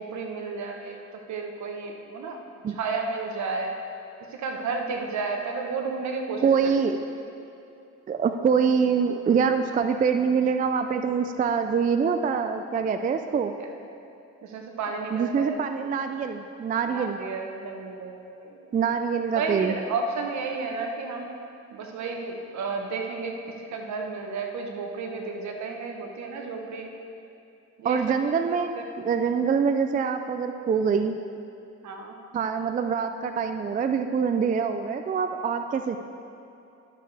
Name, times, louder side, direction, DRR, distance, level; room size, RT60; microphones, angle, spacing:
voice 1, 0.0-2.4 2.7-3.7 4.3-6.7 13.6-13.7 14.4-15.6 16.9-18.7 19.3-21.3 21.7-23.4 23.7-26.9 27.8-28.0 28.5-28.6 31.8-32.2, right 4 dB, 70° right, 2 dB, 1.1 m, -32 dB
voice 2, 6.4-7.0 8.1-13.5 15.1-17.2 18.7-19.7 27.8-31.1 32.3-36.0, right 6 dB, 30° right, 7 dB, 0.3 m, -25 dB
12.0 x 6.5 x 3.4 m, 2.7 s
cardioid pair, 90°, 30 cm